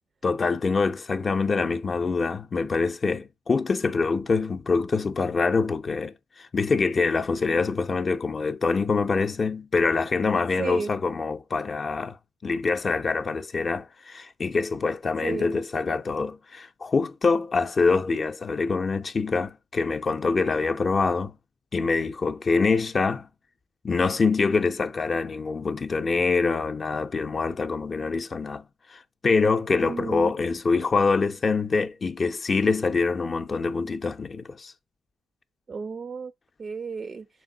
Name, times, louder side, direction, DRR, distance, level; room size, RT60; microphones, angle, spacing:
voice 1, 0.2-12.2 12.4-21.3 21.7-23.3 23.8-28.6 28.9-34.7, left 4 dB, 35° left, 0.5 m, -25 dB
voice 2, 10.6-10.9 15.2-15.6 29.8-30.3 35.7-36.3 36.6-37.3, right 5 dB, 40° right, 0.4 m, -33 dB
5.8 x 4.6 x 3.8 m
cardioid pair, 90°, 0 cm